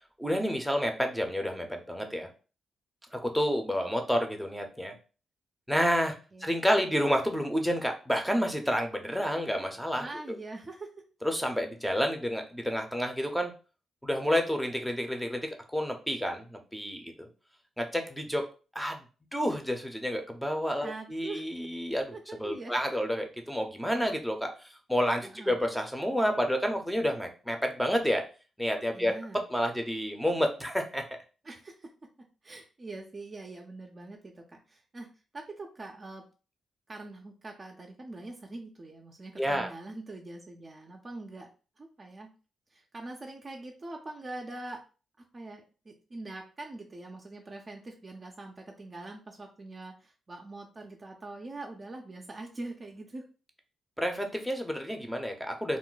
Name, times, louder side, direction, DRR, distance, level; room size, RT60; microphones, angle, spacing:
voice 1, 0.2-2.3 3.1-4.9 5.7-6.2 6.4-10.1 11.2-13.5 14.0-17.3 17.8-18.4 18.7-19.0 19.3-22.1 22.4-24.5 24.9-28.2 28.6-29.1 29.5-31.0 39.4-39.7 54.0-55.8, equal, ahead, 4 dB, 0.6 m, -29 dB
voice 2, 10.0-10.9 20.7-21.4 22.1-22.7 25.2-25.6 28.9-29.4 31.4-31.9 32.4-35.1 35.3-36.3 36.9-41.5 41.8-42.3 42.7-44.8 45.3-53.3, right 2 dB, 35° right, 1 dB, 0.5 m, -43 dB
2.4 x 2.1 x 3.8 m, 0.35 s
cardioid pair, 75°, 0 cm